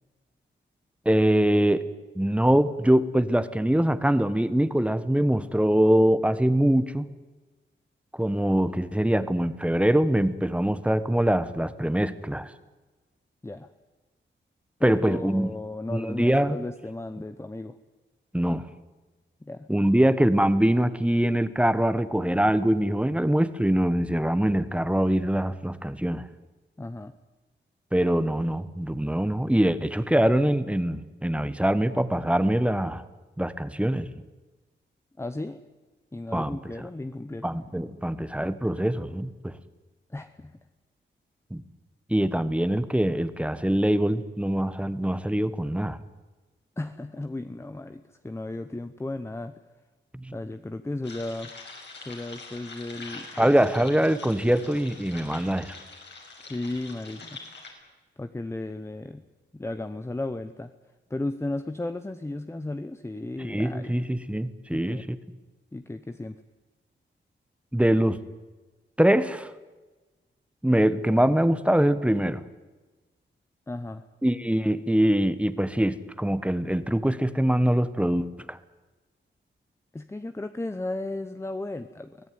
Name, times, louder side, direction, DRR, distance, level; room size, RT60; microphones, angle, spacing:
voice 1, 1.0-1.8 2.1-7.1 8.1-12.5 14.8-15.5 15.9-16.6 18.3-18.6 19.7-26.3 27.9-33.0 33.4-34.1 36.3-36.6 37.4-39.5 41.5-41.6 42.1-46.0 50.2-50.3 53.4-55.8 63.4-65.2 67.7-68.2 69.0-69.5 70.6-72.4 74.2-78.6, right 1 dB, 5° right, 13 dB, 1.2 m, -23 dB
voice 2, 14.8-17.8 19.4-19.7 26.8-27.1 35.2-35.6 36.1-37.6 40.1-40.6 46.8-49.5 50.3-51.5 52.0-53.5 56.4-57.4 58.2-59.2 59.5-60.7 61.1-63.9 64.7-65.1 65.7-66.4 73.7-74.0 79.9-82.3, left 2 dB, 15° left, 10 dB, 0.9 m, -35 dB
sound 1, 51.0-57.7, left 3 dB, 65° left, 6.3 m, -44 dB
24.0 x 17.5 x 9.5 m, 1.2 s
wide cardioid pair, 120°, 20 cm